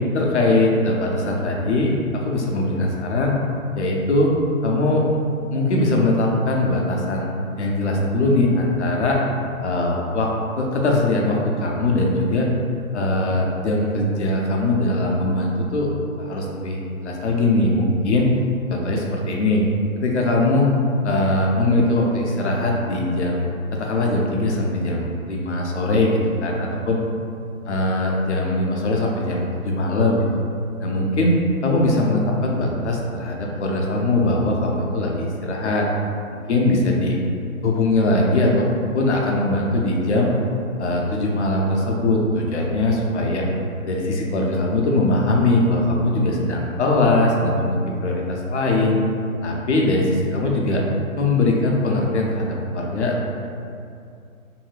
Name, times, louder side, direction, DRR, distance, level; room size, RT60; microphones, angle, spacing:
voice 1, 0.1-3.4 3.8-4.3 4.6-5.0 5.5-9.2 9.6-10.3 10.6-12.5 12.9-15.9 16.2-18.3 18.7-19.7 20.0-20.7 21.0-23.5 23.8-27.0 27.7-30.3 30.8-35.9 36.5-37.2 37.6-38.7 38.9-40.3 40.8-43.4 43.9-47.8 48.0-49.0 49.4-50.8 51.2-53.1, left 2 dB, 55° left, -1 dB, 0.5 m, -21 dB
2.7 x 2.3 x 3.1 m, 2.5 s
hypercardioid pair, 160°, 42 cm